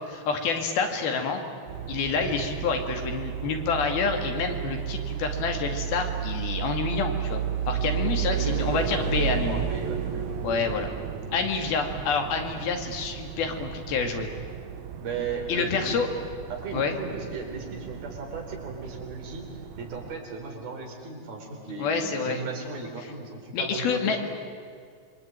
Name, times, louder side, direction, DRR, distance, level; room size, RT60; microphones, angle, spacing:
voice 1, 0.1-1.4 1.9-9.6 10.4-10.9 11.3-14.3 15.5-16.1 16.7-17.0 21.8-22.4 23.5-24.2, left 5 dB, 85° left, 4 dB, 4.3 m, -28 dB
sound 1, 1.7-20.1, right 9 dB, 60° right, 2.3 m, -33 dB
voice 2, 8.3-10.4 15.0-16.0 16.5-19.5 19.8-24.2, right 4 dB, 80° right, 1 dB, 6.0 m, -36 dB
27.5 x 24.0 x 8.9 m, 2.1 s
omnidirectional pair, 4.2 m